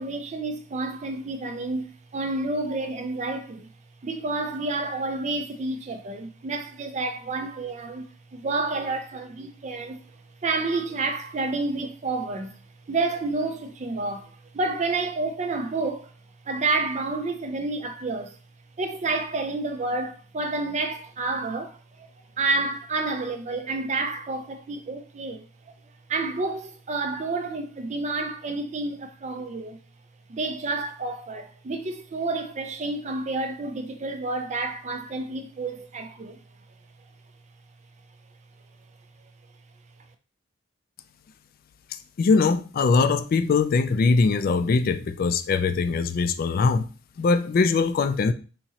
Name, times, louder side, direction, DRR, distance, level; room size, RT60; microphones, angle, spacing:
voice 1, 0.0-3.7 4.0-10.0 10.4-12.6 12.9-16.1 16.5-18.4 18.8-22.1 22.4-25.4 26.1-29.8 30.3-36.4, right 3 dB, 35° right, 0.4 m, -29 dB
voice 2, 42.2-46.8 47.2-48.3, left 4 dB, 50° left, 0.3 m, -21 dB
3.6 x 2.9 x 2.8 m
head